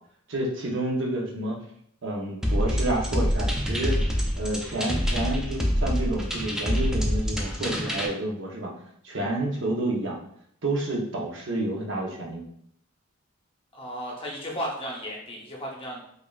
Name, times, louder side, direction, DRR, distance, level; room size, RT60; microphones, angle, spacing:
voice 1, 0.3-1.6 2.0-4.0 4.4-8.7 9.0-10.2 10.6-12.4, right 1 dB, 60° right, -1 dB, 0.8 m, -29 dB
sound 1, 2.4-8.1, equal, 5° right, 0.3 m, -26 dB
voice 2, 13.7-16.0, equal, 25° left, -2 dB, 0.7 m, -34 dB
5.2 x 2.4 x 2.3 m, 0.69 s
head